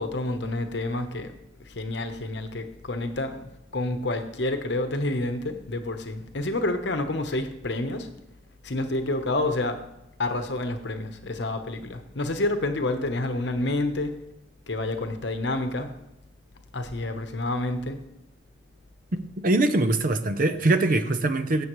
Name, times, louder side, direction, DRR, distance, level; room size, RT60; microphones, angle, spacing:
voice 1, 0.0-1.3 1.7-3.4 3.7-8.1 8.6-9.8 10.2-14.2 14.7-15.9 16.7-18.0, left 2 dB, 60° left, 7 dB, 0.9 m, -28 dB
voice 2, 19.4-21.6, right 2 dB, 45° right, 10 dB, 0.6 m, -22 dB
16.0 x 7.0 x 3.1 m, 0.87 s
head